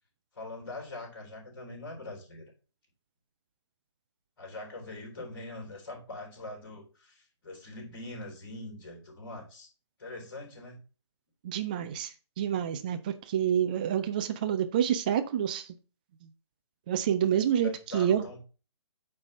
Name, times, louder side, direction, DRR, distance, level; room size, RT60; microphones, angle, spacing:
voice 1, 0.3-2.4 4.4-9.7 10.0-10.8 17.6-18.4, left 2 dB, 45° left, 1 dB, 3.5 m, -43 dB
voice 2, 11.4-15.7 16.2-16.3 16.9-18.2, right 9 dB, 15° right, 8 dB, 0.3 m, -28 dB
8.7 x 3.3 x 5.3 m, 0.34 s
figure-of-eight pair, 140°, 16 cm